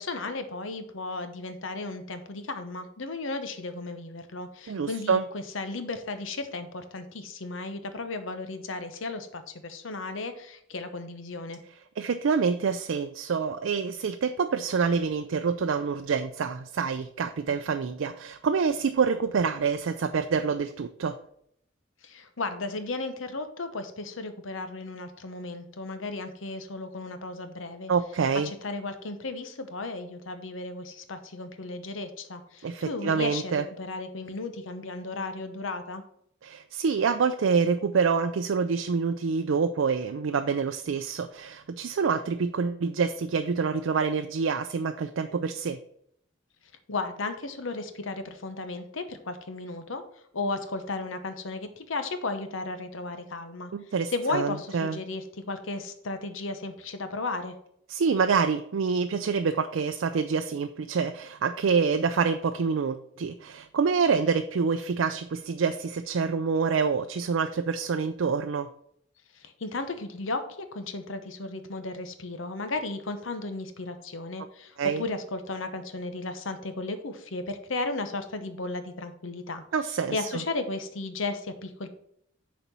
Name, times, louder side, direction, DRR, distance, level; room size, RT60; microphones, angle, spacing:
voice 1, 0.0-11.6 22.0-27.9 28.4-36.0 46.9-50.0 50.3-53.7 54.1-57.5 69.3-79.6 80.1-81.9, left 3 dB, 75° left, 9 dB, 0.9 m, -35 dB
voice 2, 4.7-5.2 12.0-21.2 27.9-28.5 32.6-33.6 36.4-45.8 53.7-55.0 57.9-68.7 74.8-75.0 79.7-80.3, right 5 dB, 70° right, 7 dB, 0.4 m, -27 dB
6.9 x 4.3 x 5.9 m, 0.70 s
head